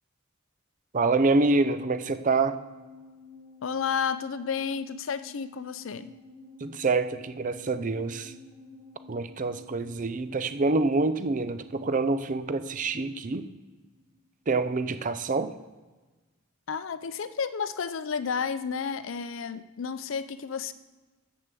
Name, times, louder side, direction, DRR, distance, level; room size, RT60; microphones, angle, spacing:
voice 1, 0.9-2.5 6.6-8.3 9.1-13.5 14.5-15.5, right 3 dB, 40° right, 12 dB, 0.5 m, -26 dB
sound 1, 1.6-14.1 14.4-14.5, left 4 dB, 75° right, 3.6 m, -50 dB
voice 2, 3.6-6.2 16.7-20.7, left 6 dB, 65° left, 14 dB, 0.5 m, -31 dB
7.4 x 6.6 x 6.8 m, 1.2 s
head